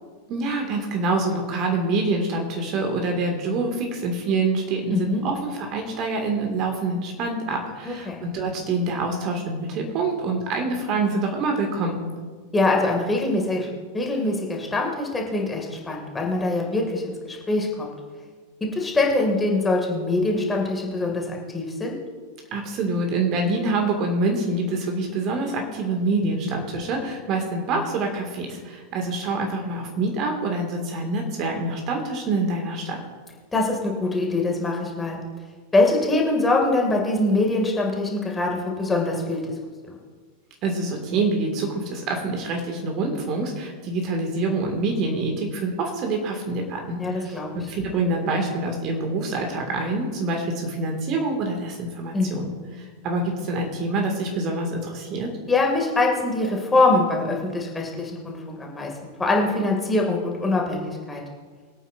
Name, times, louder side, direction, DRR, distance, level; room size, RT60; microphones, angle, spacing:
voice 1, 0.3-12.0 22.5-33.0 40.6-47.4 47.7-52.5 52.7-55.3, right 3 dB, 35° right, 2 dB, 2.0 m, -26 dB
voice 2, 4.9-5.2 7.9-8.2 12.5-13.7 13.9-17.9 18.7-22.0 33.5-35.2 35.7-39.5 39.8-39.9 47.0-47.5 52.1-52.5 55.5-58.9 59.2-61.2, left 2 dB, 10° left, 0 dB, 2.3 m, -23 dB
23.0 x 9.0 x 2.6 m, 1.5 s
figure-of-eight pair, 90°, 0 cm